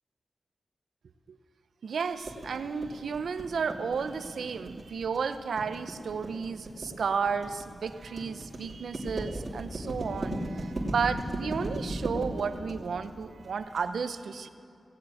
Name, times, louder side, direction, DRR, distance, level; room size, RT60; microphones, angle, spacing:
voice 1, 1.8-14.5, right 5 dB, 85° right, 11 dB, 0.6 m, -33 dB
sound 1, 2.2-13.8, right 1 dB, 45° right, 2.8 m, -36 dB
17.0 x 7.6 x 8.9 m, 2.5 s
wide cardioid pair, 80°, 0 cm